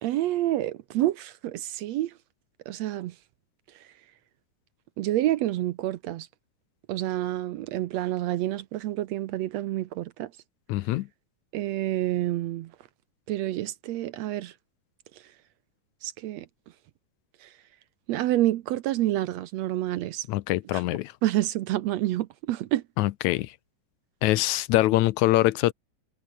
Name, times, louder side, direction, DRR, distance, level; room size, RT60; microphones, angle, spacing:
voice 1, 0.0-2.1 2.7-3.1 5.0-6.3 6.9-10.3 11.5-12.7 13.3-14.5 16.0-16.5 17.4-17.5 18.1-20.3 21.2-22.8, right 14 dB, 70° right, 1.8 m, -28 dB
voice 2, 10.7-11.1 20.3-21.1 23.0-23.6 24.2-25.7, left 17 dB, 75° left, 2.0 m, -24 dB
omnidirectional pair, 3.5 m